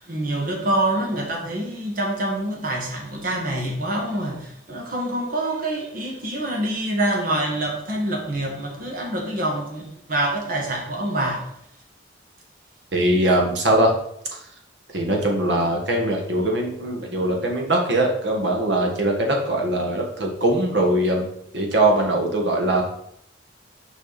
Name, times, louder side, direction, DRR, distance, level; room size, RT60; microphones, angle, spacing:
voice 1, 0.1-11.5, right 1 dB, 50° right, 1.7 m, -26 dB
voice 2, 12.9-13.9 14.9-21.3 21.5-22.8, right 1 dB, 65° right, 1.7 m, -21 dB
6.3 x 5.2 x 4.2 m
head